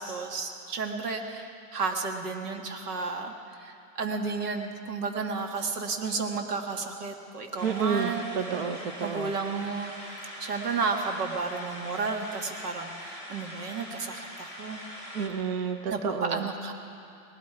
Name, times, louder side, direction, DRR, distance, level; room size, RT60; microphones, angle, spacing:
voice 1, 0.0-8.7 9.0-9.9 10.4-14.8 15.9-16.7, right 4 dB, 90° right, 4 dB, 2.0 m, -32 dB
sound 1, 7.6-15.3, equal, 15° right, 1.2 m, -42 dB
voice 2, 7.6-9.3 15.1-16.5, right 6 dB, 40° right, 7 dB, 0.7 m, -30 dB
19.0 x 12.5 x 4.8 m, 2.6 s
supercardioid pair, 180°, 45 cm